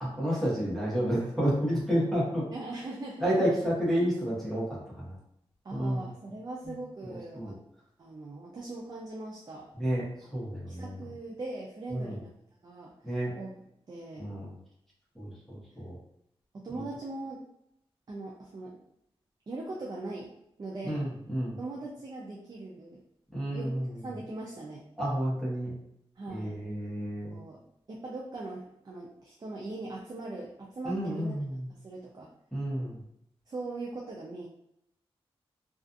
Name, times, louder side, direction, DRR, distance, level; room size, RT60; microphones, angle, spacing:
voice 1, 0.0-2.4 3.2-5.1 5.7-6.1 7.1-7.5 9.8-10.0 10.3-10.9 11.9-12.2 13.0-13.3 14.2-14.5 15.2-16.0 20.8-21.6 23.3-23.8 25.0-25.7 26.3-27.3 30.8-31.6 32.5-33.0, equal, 5° left, -7 dB, 1.0 m, -30 dB
voice 2, 2.5-3.5 5.6-7.6 8.0-9.7 10.7-12.3 12.6-13.5 13.9-14.3 16.5-17.4 18.1-18.8 19.5-20.3 20.6-21.0 21.6-23.0 23.5-23.8 24.0-24.9 26.2-26.6 27.3-27.6 27.9-31.4 31.8-32.3 33.5-34.5, right 2 dB, 40° right, -2 dB, 0.4 m, -40 dB
2.4 x 2.4 x 2.5 m, 0.76 s
wide cardioid pair, 115°, 10 cm